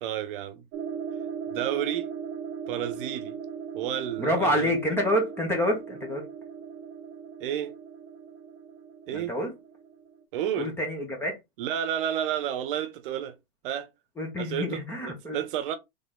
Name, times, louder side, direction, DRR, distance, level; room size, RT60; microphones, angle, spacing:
voice 1, 0.0-0.6 1.5-2.1 2.7-3.4 3.7-5.0 7.4-7.7 9.1-9.3 10.3-10.7 11.6-13.4 13.6-13.9 14.4-14.8 15.1-15.8, right 10 dB, 60° right, 0.8 m, -31 dB
sound 1, 0.7-10.2, right 6 dB, 30° right, 0.5 m, -39 dB
voice 2, 4.2-6.2 9.1-9.5 10.6-11.4 14.2-15.4, equal, 10° left, 1.0 m, -27 dB
3.9 x 3.4 x 3.7 m
supercardioid pair, 175°, 30 cm